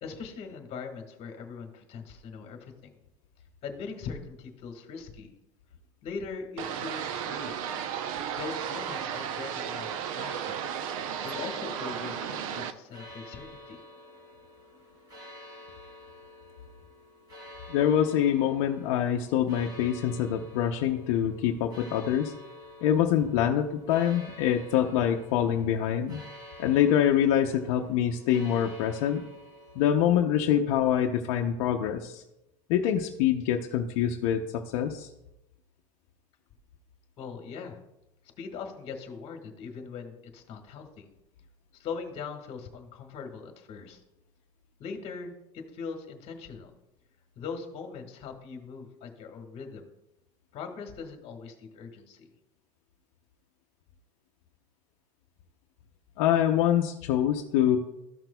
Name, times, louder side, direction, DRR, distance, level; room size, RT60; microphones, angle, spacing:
voice 1, 0.0-3.0 3.6-5.3 6.0-7.6 8.3-10.6 11.2-13.8 37.2-37.8 38.4-41.1 41.7-44.0 44.8-46.7 47.4-49.9 50.5-52.3, left 5 dB, 35° left, 4 dB, 1.5 m, -41 dB
sound 1, 6.6-12.7, right 8 dB, 85° right, 0.6 m, -34 dB
sound 2, 11.0-29.9, left 1 dB, 25° right, 3.1 m, -49 dB
voice 2, 17.7-22.3 22.8-26.2 26.6-29.2 29.8-32.2 32.7-35.1 56.2-57.8, left 10 dB, 65° left, 3 dB, 0.6 m, -25 dB
14.0 x 6.0 x 2.2 m, 0.91 s
supercardioid pair, 155°, 17 cm